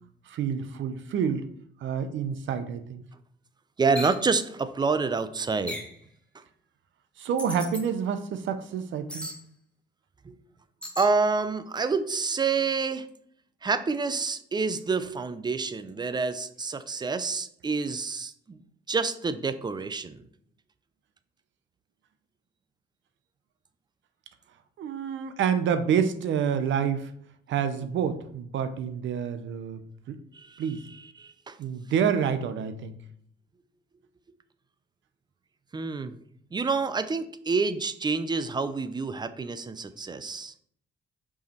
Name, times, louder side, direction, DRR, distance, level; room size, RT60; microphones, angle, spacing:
voice 1, 0.3-1.5 1.8-3.1 7.2-9.3 24.8-27.1 27.5-29.8 30.1-30.2 30.6-30.8 31.6-33.0, right 7 dB, 70° right, 10 dB, 0.8 m, -28 dB
voice 2, 3.8-5.9 10.2-10.3 11.0-13.1 13.6-18.6 18.9-20.2 30.3-30.6 31.2-31.6 35.7-36.2 36.5-40.5, right 4 dB, 20° right, 12 dB, 0.5 m, -28 dB
sound 1, 3.9-4.2 5.7-6.0 7.4-7.8 9.1-9.4 10.8-11.1, left 1 dB, 5° left, 1.4 m, -36 dB
5.6 x 4.8 x 4.4 m, 0.65 s
cardioid pair, 90°, 20 cm